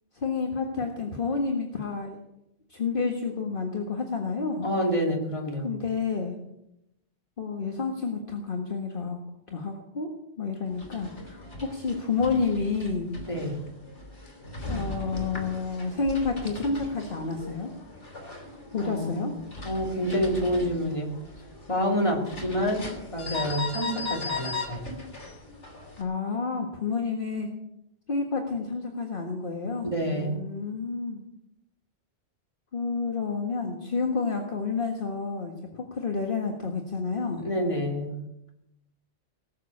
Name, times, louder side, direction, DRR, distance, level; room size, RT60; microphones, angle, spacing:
voice 1, 0.1-2.2 2.7-4.7 5.6-6.4 7.4-9.2 9.5-10.1 10.4-13.1 14.7-17.7 18.7-19.3 26.0-27.5 28.1-31.2 32.7-37.5, left 4 dB, 50° left, 2 dB, 1.8 m, -30 dB
voice 2, 4.6-5.7 13.2-13.6 18.8-19.2 19.6-21.1 21.7-24.9 29.9-30.5 37.4-38.2, equal, 25° left, 0 dB, 3.0 m, -28 dB
sound 1, 10.7-26.0, left 3 dB, 75° left, 3.7 m, -38 dB
19.0 x 7.5 x 8.4 m, 0.85 s
omnidirectional pair, 1.2 m